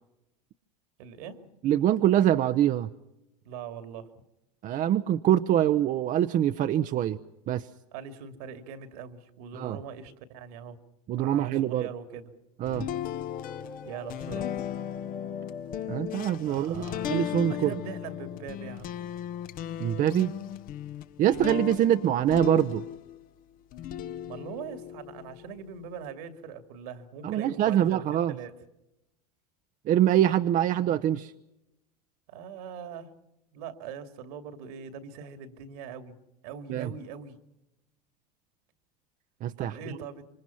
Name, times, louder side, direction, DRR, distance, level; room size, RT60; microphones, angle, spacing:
voice 1, 1.0-1.5 3.4-4.1 7.9-10.8 11.2-12.3 13.8-14.5 16.4-17.2 17.5-19.0 21.2-21.5 24.3-28.6 32.3-33.1 33.5-36.2 36.4-37.4 39.6-40.2, right 6 dB, 70° right, 9 dB, 2.5 m, -42 dB
voice 2, 1.6-2.9 4.6-7.2 7.5-7.7 9.5-9.8 11.1-11.9 12.6-12.9 15.9-17.7 19.8-20.3 21.2-22.8 27.2-28.3 29.9-31.3 36.7-36.9 39.4-39.7, right 11 dB, 40° right, 10 dB, 0.8 m, -24 dB
sound 1, 11.1-11.8 13.3-17.1, left 3 dB, 5° left, 1.0 m, -45 dB
sound 2, 12.7-23.3 23.7-26.0, left 11 dB, 45° left, 1.0 m, -36 dB
26.5 x 24.5 x 5.8 m, 0.90 s
hypercardioid pair, 100°, 20 cm